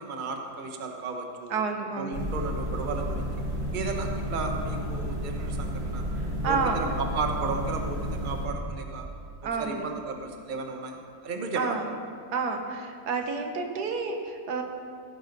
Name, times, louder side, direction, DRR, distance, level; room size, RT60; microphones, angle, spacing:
voice 1, 0.0-1.6 1.9-3.3 3.7-6.0 6.4-9.1 9.6-11.0 11.2-11.8, right 3 dB, 35° right, 3 dB, 1.1 m, -34 dB
voice 2, 1.5-2.2 6.4-6.8 9.4-9.8 11.5-11.9 12.3-14.6, right 4 dB, 90° right, 4 dB, 1.7 m, -29 dB
sound 1, 2.1-8.5, equal, 70° right, 2.5 m, -32 dB
15.0 x 10.5 x 4.0 m, 2.2 s
omnidirectional pair, 1.7 m